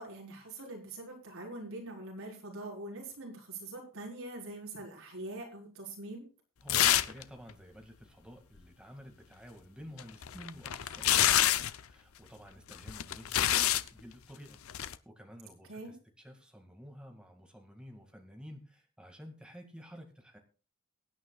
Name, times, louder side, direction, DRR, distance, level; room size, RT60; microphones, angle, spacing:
voice 1, 0.0-6.3 15.7-15.9, right 2 dB, 70° right, -1 dB, 4.5 m, -43 dB
voice 2, 6.6-14.6 15.0-20.4, equal, 5° right, 2 dB, 2.0 m, -51 dB
sound 1, 6.7-7.2 7.5-7.6 10.0-11.8 12.7-13.9 14.7-15.0, left 12 dB, 75° left, 0.6 m, -27 dB
22.5 x 9.2 x 2.4 m, 0.37 s
head